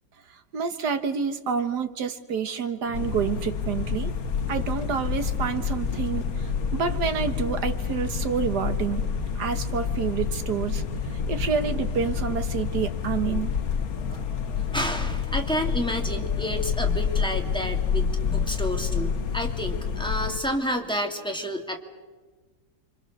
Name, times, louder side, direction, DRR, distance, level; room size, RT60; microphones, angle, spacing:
voice 1, 0.5-4.1 4.5-9.1 9.4-10.8 11.1-13.5, right 6 dB, 75° right, 9 dB, 1.9 m, -28 dB
sound 1, 2.9-20.4, left 7 dB, 60° left, 1.5 m, -28 dB
sound 2, 2.9-12.9, right 4 dB, 40° right, 3.3 m, -40 dB
voice 2, 14.0-21.8, equal, 5° left, 2 dB, 2.3 m, -30 dB
29.5 x 25.0 x 6.6 m, 1.3 s
omnidirectional pair, 1.8 m